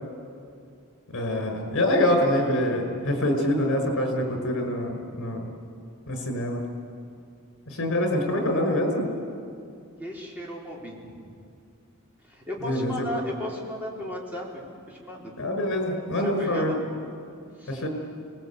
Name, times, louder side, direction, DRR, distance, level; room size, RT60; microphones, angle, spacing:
voice 1, 1.1-5.5 6.1-6.6 7.7-9.1 12.6-13.1 15.4-16.7 17.7-17.9, left 1 dB, 60° left, 3 dB, 5.6 m, -25 dB
voice 2, 10.0-11.2 12.3-15.3 16.4-16.8 17.6-17.8, equal, 10° right, -4 dB, 4.5 m, -35 dB
25.5 x 20.5 x 8.6 m, 2.4 s
head